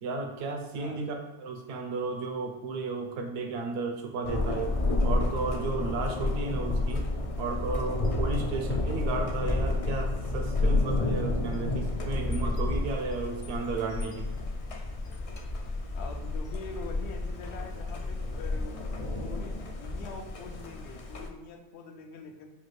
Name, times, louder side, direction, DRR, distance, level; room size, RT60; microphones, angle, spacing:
voice 1, 0.0-4.7 5.0-7.1 7.4-14.3, right 4 dB, 65° right, 4 dB, 0.8 m, -33 dB
Thunder, 4.2-21.3, left 2 dB, 60° left, 0.3 m, -30 dB
voice 2, 15.9-18.8 19.2-22.5, left 3 dB, 75° left, 4 dB, 0.9 m, -44 dB
5.8 x 2.4 x 3.2 m, 1.1 s
omnidirectional pair, 1.2 m